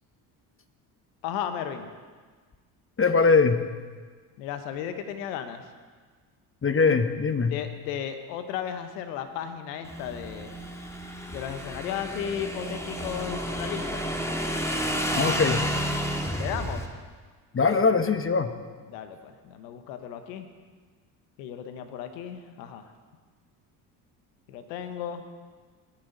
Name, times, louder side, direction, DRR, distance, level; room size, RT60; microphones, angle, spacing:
voice 1, 1.2-1.9 4.4-5.6 7.5-10.5 11.3-14.1 16.4-16.8 18.9-20.5 21.4-22.9 24.5-25.2, left 9 dB, 85° left, 8 dB, 1.2 m, -35 dB
voice 2, 3.0-3.6 6.6-7.5 15.2-15.6 17.5-18.5, left 4 dB, 25° left, 9 dB, 1.2 m, -21 dB
Motorcycle / Engine, 9.8-16.9, equal, 5° left, 1.9 m, -31 dB
20.5 x 10.0 x 4.0 m, 1.5 s
supercardioid pair, 70°, 49 cm